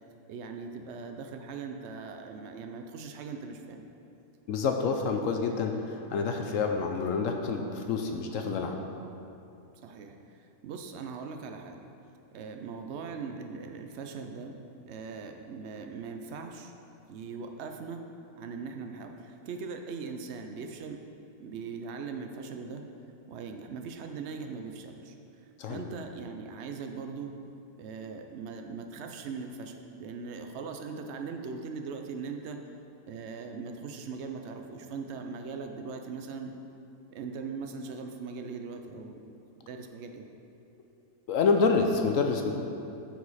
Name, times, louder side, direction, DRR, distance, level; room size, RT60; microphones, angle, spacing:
voice 1, 0.3-3.9 9.8-11.8 12.3-14.6 14.9-16.7 17.1-18.0 18.4-21.0 21.4-22.9 23.3-25.2 25.7-27.3 27.8-32.6 33.1-36.5 37.1-39.2 39.6-40.3, right 5 dB, 75° right, 4 dB, 0.6 m, -40 dB
voice 2, 4.5-8.8 25.6-25.8 41.3-42.5, left 4 dB, 65° left, 4 dB, 0.8 m, -27 dB
12.0 x 4.8 x 4.2 m, 2.7 s
omnidirectional pair, 1.8 m